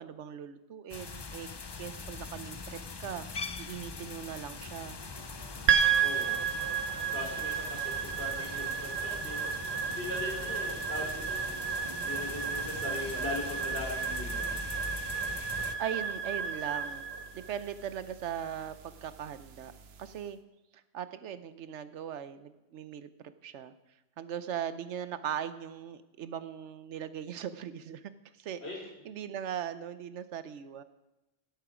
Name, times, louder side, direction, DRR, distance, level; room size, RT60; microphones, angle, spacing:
voice 1, 0.0-1.5 1.8-3.3 3.6-5.0 15.8-17.1 17.3-19.7 20.0-20.4 20.9-23.1 23.4-23.7 24.2-28.0 28.4-28.6 29.0-30.8, right 9 dB, 90° right, 13 dB, 1.1 m, -39 dB
sound 1, 0.9-15.7, left 4 dB, 30° left, 0.5 m, -42 dB
sound 2, 4.1-15.1, right 2 dB, 25° right, 1.0 m, -52 dB
sound 3, 5.7-20.0, right 7 dB, 65° right, 1.0 m, -33 dB
voice 2, 6.0-6.4 7.1-9.5 9.8-11.5 12.0-14.6 28.6-28.8, left 2 dB, 65° left, -2 dB, 4.3 m, -40 dB
17.0 x 8.0 x 5.0 m, 1.0 s
omnidirectional pair, 1.2 m